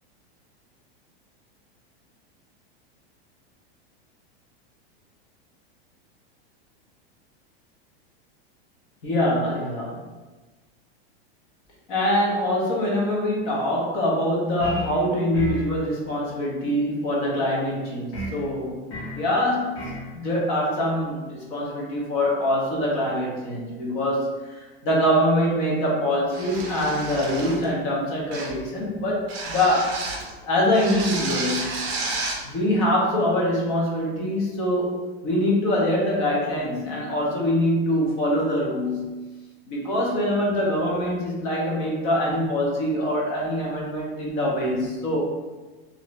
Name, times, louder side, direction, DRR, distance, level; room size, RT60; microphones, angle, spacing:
voice 1, 9.0-10.0 11.9-18.9 19.2-30.0 30.4-31.8 32.4-35.0 35.2-39.2 39.7-45.2, left 1 dB, 30° left, -3 dB, 0.6 m, -24 dB
sound 1, 14.6-15.0 15.3-15.7 18.1-18.4 18.9-19.2 19.7-20.1, left 1 dB, 70° left, 1.2 m, -32 dB
sound 2, 26.3-27.7 28.3-28.6 29.3-30.3 30.7-32.4, right 3 dB, 30° right, 0.6 m, -31 dB
3.0 x 2.5 x 3.0 m, 1.2 s
supercardioid pair, 180°, 31 cm